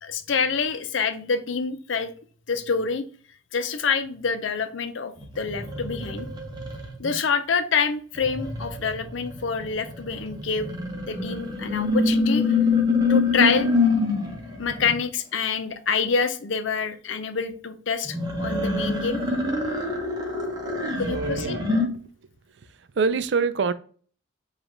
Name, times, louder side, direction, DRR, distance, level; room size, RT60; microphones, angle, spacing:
voice 1, 0.0-2.1 2.5-3.0 3.5-6.3 7.0-10.7 11.1-12.4 13.1-13.7 14.6-19.2 21.0-21.6, left 5 dB, 75° left, 9 dB, 0.6 m, -26 dB
sound 1, 5.2-7.1 8.1-15.0 18.0-21.9, left 3 dB, 20° right, 0.9 m, -26 dB
voice 2, 21.1-22.0 22.7-23.7, right 4 dB, 60° right, 13 dB, 0.4 m, -26 dB
7.0 x 2.5 x 3.1 m, 0.43 s
head